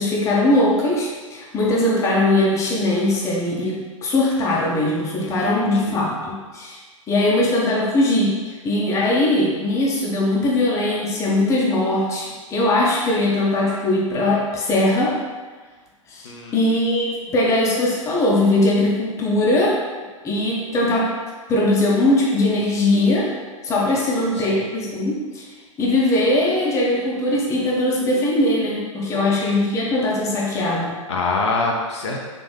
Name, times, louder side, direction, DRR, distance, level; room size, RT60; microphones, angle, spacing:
voice 1, 0.0-6.8 7.1-15.2 16.1-19.8 20.2-21.2 21.5-23.3 23.6-25.5 25.8-31.0, left 1 dB, 15° left, -3 dB, 0.7 m, -20 dB
voice 2, 5.2-6.1 16.2-16.7 24.3-24.8 29.1-29.5 31.1-32.3, left 3 dB, 55° left, -1 dB, 0.5 m, -27 dB
3.9 x 2.9 x 3.3 m, 1.4 s
figure-of-eight pair, 100°, 17 cm